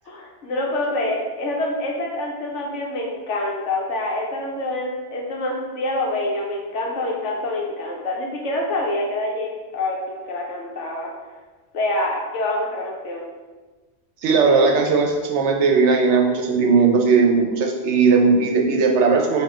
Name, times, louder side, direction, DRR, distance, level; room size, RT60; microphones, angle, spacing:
voice 1, 0.1-11.1 11.7-13.3, left 1 dB, 75° left, -1 dB, 1.2 m, -26 dB
voice 2, 14.2-19.4, right 4 dB, 70° right, 1 dB, 0.9 m, -17 dB
4.4 x 2.6 x 4.3 m, 1.3 s
omnidirectional pair, 1.2 m